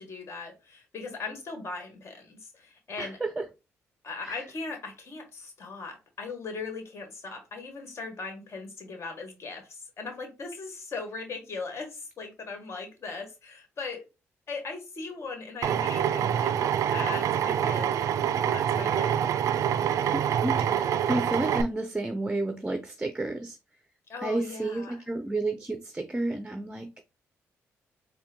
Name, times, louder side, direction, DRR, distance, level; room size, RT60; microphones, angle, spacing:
voice 1, 0.0-3.2 4.0-14.0 14.5-16.5 16.9-18.0 18.5-19.2 24.1-24.9, left 4 dB, 55° left, 1.6 m, -39 dB
voice 2, 3.0-3.5 4.2-4.4 20.1-23.6 24.2-27.0, right 2 dB, 15° right, 0.5 m, -31 dB
Drill, 15.6-21.6, right 9 dB, 75° right, 0.4 m, -26 dB
4.2 x 2.2 x 3.7 m
cardioid pair, 75°, 6 cm